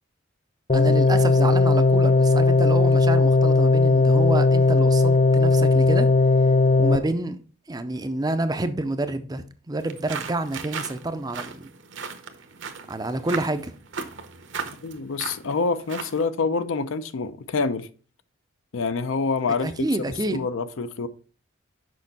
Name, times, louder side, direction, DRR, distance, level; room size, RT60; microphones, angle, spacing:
sound 1, 0.7-7.0, left 3 dB, 30° left, 0.5 m, -18 dB
voice 1, 0.7-6.1 6.8-7.4 7.7-11.7 12.9-13.7 19.6-20.4, right 2 dB, 20° right, 0.4 m, -28 dB
sound 2, 9.8-16.3, right 5 dB, 60° right, 0.8 m, -37 dB
voice 2, 14.8-17.9 18.7-19.9 20.3-21.1, left 4 dB, 75° left, 0.5 m, -26 dB
6.4 x 5.3 x 4.0 m
head